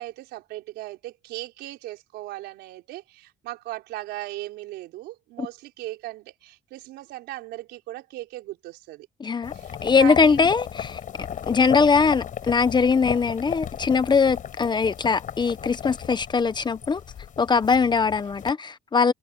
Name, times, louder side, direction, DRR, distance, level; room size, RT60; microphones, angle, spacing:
voice 1, 0.0-9.1 9.5-10.5, right 16 dB, 85° right, 4.6 m, -38 dB
voice 2, 9.2-9.5 9.8-11.0 11.5-17.0 17.4-19.1, left 5 dB, 25° left, 1.0 m, -21 dB
sound 1, 9.4-18.5, left 9 dB, 50° left, 5.2 m, -35 dB
cardioid pair, 110°, 17 cm